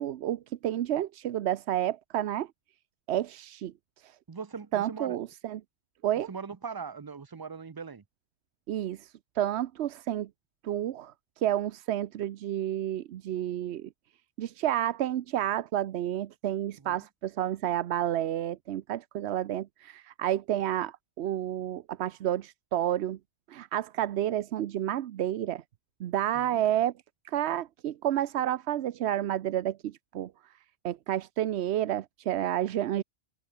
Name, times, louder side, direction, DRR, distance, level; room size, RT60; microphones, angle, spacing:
voice 1, 0.0-2.5 3.1-4.2 4.7-5.6 6.0-6.3 8.7-10.3 10.6-13.9 14.4-23.2 23.5-25.6 26.0-26.9 27.2-30.3 30.8-33.0, right 12 dB, 80° right, 0.9 m, -30 dB
voice 2, 4.3-5.2 6.3-8.0 16.8-17.1 26.3-26.6, right 5 dB, 30° right, 0.4 m, -40 dB
omnidirectional pair, 1.1 m